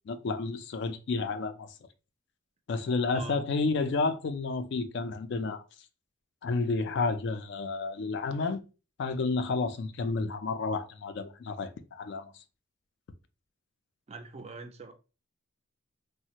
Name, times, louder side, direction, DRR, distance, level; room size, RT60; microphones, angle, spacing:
voice 1, 0.1-1.7 2.7-5.6 6.4-8.6 9.0-12.3, left 3 dB, 55° left, 0.3 m, -31 dB
voice 2, 14.1-14.9, right 3 dB, 30° right, 0.3 m, -43 dB
3.2 x 2.0 x 2.8 m
head